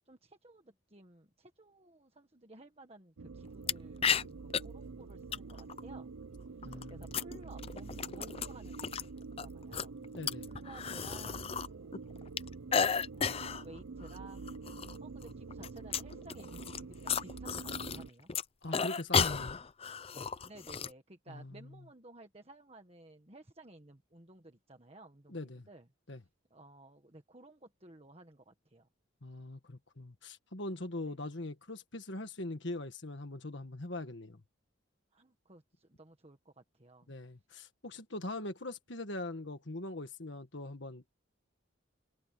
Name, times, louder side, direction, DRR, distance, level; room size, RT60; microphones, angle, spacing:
voice 1, 0.1-6.1 6.9-10.0 10.5-12.0 13.1-14.4 14.8-18.3 20.4-25.9 26.5-28.9 31.0-31.2 35.1-37.1, right 2 dB, 30° right, 1.6 m, -55 dB
sound 1, 3.2-18.1, right 4 dB, 85° right, 0.6 m, -47 dB
sound 2, 3.7-3.8 4.0-4.6 5.3-5.8 6.6-9.0 9.4-11.7 11.9-13.6 14.0-14.2 14.5-15.0 15.2-18.0 18.3-20.9, left 6 dB, 30° left, 0.5 m, -33 dB
voice 2, 6.6-7.1 10.2-10.5 18.6-19.6 21.3-21.7 25.3-25.7 26.1-26.2 29.2-34.4 37.1-41.1, left 2 dB, 60° left, 1.6 m, -42 dB
head